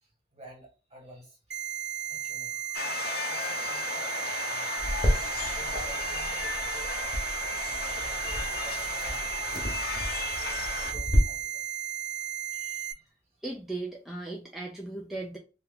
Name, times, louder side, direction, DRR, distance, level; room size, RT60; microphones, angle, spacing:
voice 1, 0.0-1.6 2.0-2.8 3.1-4.9 5.5-6.9 7.6-9.4 10.2-11.6 12.2-13.0, equal, 35° right, -1 dB, 1.3 m, -51 dB
sound 1, 1.5-12.9, right 12 dB, 70° right, 0.6 m, -35 dB
sound 2, 2.7-10.9, left 5 dB, 55° left, 0.5 m, -35 dB
sound 3, 4.8-11.2, equal, 25° left, 0.9 m, -32 dB
voice 2, 13.4-15.4, right 2 dB, ahead, -1 dB, 0.3 m, -37 dB
2.8 x 2.3 x 3.5 m, 0.34 s
head